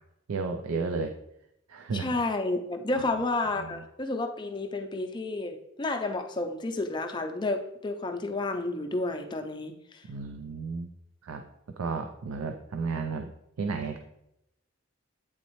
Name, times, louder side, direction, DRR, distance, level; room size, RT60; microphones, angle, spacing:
voice 1, 0.3-1.1 1.7-2.1 2.9-3.0 3.6-3.7 10.1-10.9 11.2-11.4 11.8-13.3 13.6-14.0, right 4 dB, 90° right, 5 dB, 0.5 m, -32 dB
voice 2, 1.9-10.0, left 2 dB, 20° left, 5 dB, 0.5 m, -31 dB
8.6 x 4.0 x 3.1 m, 0.81 s
head